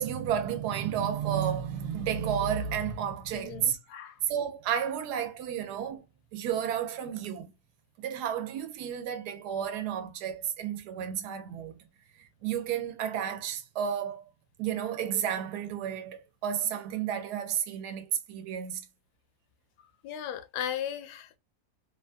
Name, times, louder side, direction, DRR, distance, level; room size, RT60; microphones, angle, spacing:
voice 1, 0.0-3.8 4.3-6.0 6.3-7.5 8.0-11.7 12.2-14.2 14.6-18.9, right 9 dB, 90° right, 1.2 m, -32 dB
voice 2, 3.3-4.2 20.0-21.4, left 9 dB, 85° left, 1.1 m, -36 dB
3.0 x 2.3 x 2.4 m
omnidirectional pair, 1.7 m